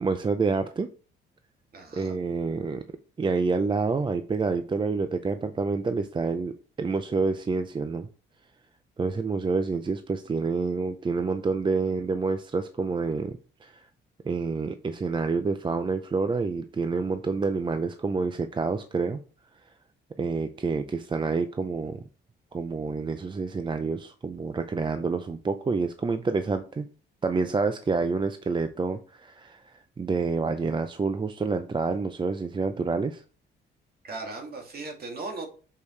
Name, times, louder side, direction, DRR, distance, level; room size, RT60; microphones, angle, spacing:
voice 1, 0.0-0.9 1.9-2.8 3.2-8.1 9.0-13.9 14.2-19.2 20.2-22.0 22.5-26.9 27.2-33.2, right 4 dB, 25° right, 0.5 m, -28 dB
voice 2, 1.7-2.2 34.0-35.5, right 3 dB, 50° right, 2.2 m, -37 dB
6.5 x 5.2 x 3.2 m
cardioid pair, 90°, 20 cm